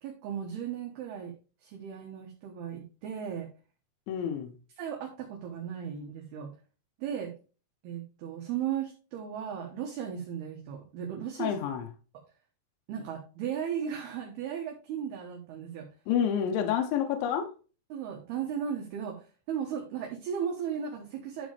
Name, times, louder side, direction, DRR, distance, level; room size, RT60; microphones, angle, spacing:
voice 1, 0.0-1.3 1.6-3.5 4.8-6.5 7.0-7.3 7.8-11.6 12.9-15.9 17.9-21.5, right 8 dB, 70° right, 2.7 m, -36 dB
voice 2, 4.1-4.5 11.4-11.9 16.1-17.5, left 8 dB, 75° left, 3.1 m, -28 dB
11.5 x 5.0 x 3.3 m
omnidirectional pair, 5.7 m